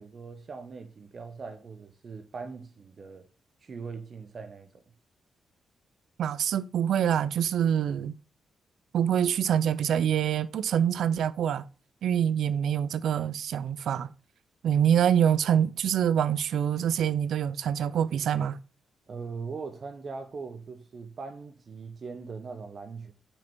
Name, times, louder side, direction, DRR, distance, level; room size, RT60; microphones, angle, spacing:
voice 1, 0.0-3.3 3.6-4.7 19.1-23.1, right 4 dB, 50° right, 1.0 m, -40 dB
voice 2, 6.2-8.2 8.9-11.6 12.0-14.1 14.6-18.6, right 9 dB, 75° right, 0.4 m, -25 dB
6.1 x 5.1 x 4.4 m
cardioid pair, 65°, 0 cm